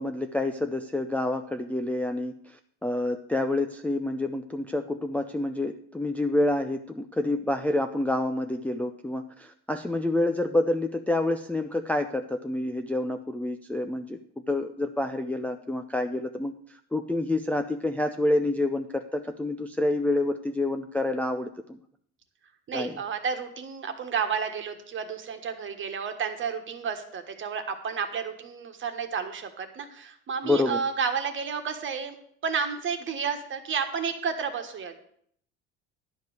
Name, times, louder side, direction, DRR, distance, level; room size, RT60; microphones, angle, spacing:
voice 1, 0.0-2.3 2.8-14.2 14.5-16.5 16.9-21.5 22.7-22.9 30.4-30.8, left 2 dB, 5° left, 5 dB, 0.4 m, -28 dB
voice 2, 22.7-32.1 32.4-35.0, right 6 dB, 40° right, 6 dB, 1.5 m, -31 dB
11.0 x 5.3 x 7.9 m, 0.64 s
cardioid pair, 130°, 31 cm